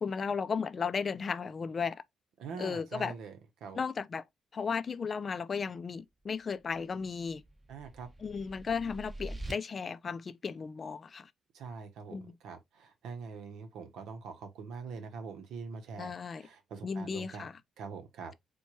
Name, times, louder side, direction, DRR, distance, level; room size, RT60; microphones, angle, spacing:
voice 1, 0.0-2.0 2.6-3.2 3.7-4.2 4.5-7.4 8.2-11.3 12.1-12.4 16.0-16.5 16.8-17.6, left 5 dB, 40° left, 0.3 m, -35 dB
voice 2, 2.4-3.3 3.6-3.8 7.7-8.1 11.5-16.1 16.4-17.4 17.8-18.3, right 5 dB, 80° right, 0.8 m, -43 dB
sound 1, 6.9-9.5, right 1 dB, 15° right, 0.9 m, -45 dB
4.4 x 2.2 x 2.9 m
cardioid pair, 90°, 0 cm